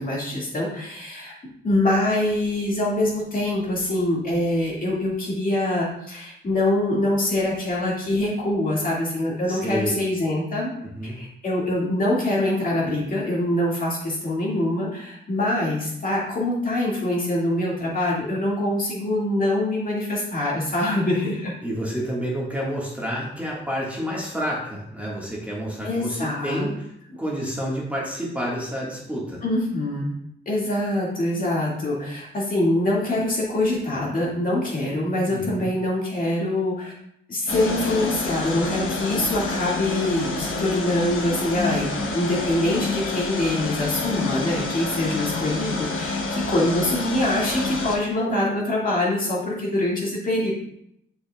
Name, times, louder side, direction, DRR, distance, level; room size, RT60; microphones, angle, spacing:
voice 1, 0.0-1.3 1.6-10.7 11.0-21.5 25.8-26.7 29.4-30.1 30.5-36.9 37.3-50.5, left 1 dB, 45° left, -4 dB, 2.0 m, -24 dB
voice 2, 9.5-9.9 10.8-11.2 21.6-26.9 27.2-29.4 35.3-35.7, equal, 5° right, -5 dB, 1.6 m, -29 dB
sound 1, 37.5-48.0, left 3 dB, 85° left, 1.0 m, -28 dB
6.6 x 6.3 x 2.3 m, 0.76 s
wide cardioid pair, 110°, 21 cm